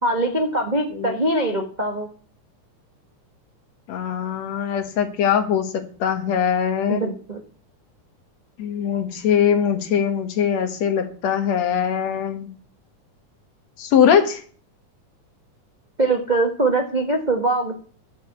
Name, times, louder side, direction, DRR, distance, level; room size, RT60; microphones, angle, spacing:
voice 1, 0.0-2.1 6.9-7.4 16.0-17.8, right 2 dB, 55° right, 2 dB, 0.4 m, -22 dB
voice 2, 3.9-7.0 8.6-12.5 13.8-14.4, left 8 dB, 60° left, 8 dB, 2.4 m, -21 dB
11.5 x 7.4 x 8.4 m, 0.43 s
omnidirectional pair, 3.7 m